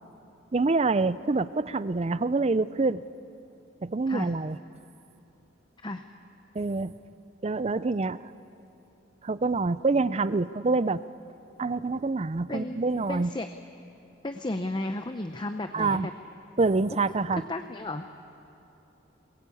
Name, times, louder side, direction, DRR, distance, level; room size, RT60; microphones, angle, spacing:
voice 1, 0.5-3.0 3.8-4.6 6.5-6.9 7.4-8.2 9.2-11.0 11.6-13.3 15.7-16.1 16.6-17.4, right 3 dB, 35° right, 16 dB, 0.5 m, -26 dB
voice 2, 13.1-13.5 14.2-16.1 17.3-18.0, left 2 dB, 25° left, 7 dB, 0.7 m, -33 dB
22.0 x 21.5 x 8.5 m, 2.9 s
head